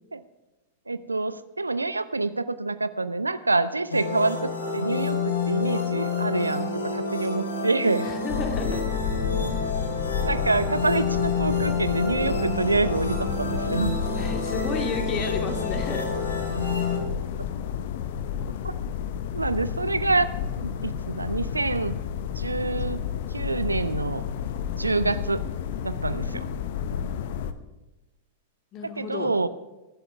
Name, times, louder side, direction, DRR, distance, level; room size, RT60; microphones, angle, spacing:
voice 1, 0.9-8.1 10.2-14.0 18.6-18.7 19.3-20.3 20.6-22.0 22.4-23.0 23.3-24.2 24.8-25.5 25.8-26.4 29.0-29.5, right 3 dB, 80° right, 14 dB, 0.7 m, -26 dB
sound 1, 3.9-17.0, left 4 dB, 75° left, 3.5 m, -29 dB
voice 2, 8.0-8.9 14.2-16.1 26.3-26.5 26.8-26.9 28.7-29.3, left 4 dB, 35° left, 5 dB, 2.4 m, -32 dB
sound 2, 8.3-27.5, left 8 dB, 55° left, 1.0 m, -31 dB
24.0 x 11.5 x 3.5 m, 1.1 s
figure-of-eight pair, 90°, 0 cm